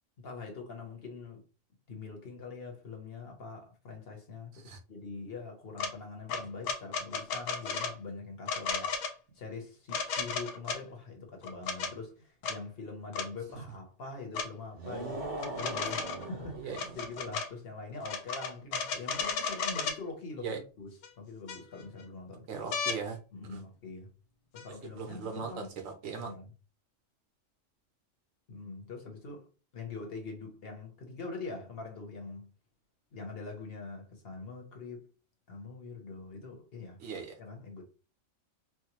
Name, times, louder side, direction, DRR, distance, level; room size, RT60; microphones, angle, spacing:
voice 1, 0.2-1.4 1.9-9.1 9.3-22.5 23.3-24.1 24.5-25.7 26.2-26.5 28.5-29.5 29.7-32.5 33.1-35.1 35.5-37.0 37.4-37.8, left 4 dB, 50° left, 1.0 m, -44 dB
sound 1, 5.8-5.9 6.3-7.9 8.5-9.1 9.9-10.8 11.4-11.9 12.4-12.6 13.1-13.3 14.3-14.5 15.4-16.3 16.7-17.5 18.0-20.0 21.0-21.1 21.5-22.0 22.7-23.0 24.6-24.7, left 5 dB, 80° left, 1.0 m, -34 dB
sound 2, 14.7-17.1, right 2 dB, 60° right, 1.5 m, -40 dB
voice 2, 22.5-23.2 23.5-23.6 25.0-26.3 37.0-37.3, right 5 dB, 80° right, 1.2 m, -38 dB
4.6 x 2.0 x 2.9 m
omnidirectional pair, 1.4 m